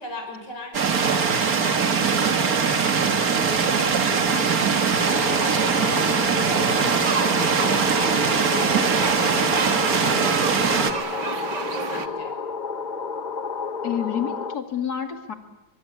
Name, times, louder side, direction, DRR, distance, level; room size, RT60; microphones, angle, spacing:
voice 1, 0.0-2.9 3.5-10.8 11.1-12.4, left 1 dB, 80° left, 3 dB, 6.7 m, -39 dB
sound 1, 0.7-10.9, right 6 dB, 55° right, 2.1 m, -21 dB
sound 2, 5.1-14.5, left 5 dB, 35° left, 0.9 m, -31 dB
sound 3, 6.6-12.1, right 7 dB, 80° right, 2.0 m, -30 dB
voice 2, 13.8-15.3, left 9 dB, 60° left, 7 dB, 2.9 m, -28 dB
23.5 x 23.5 x 8.5 m, 1.0 s
omnidirectional pair, 1.9 m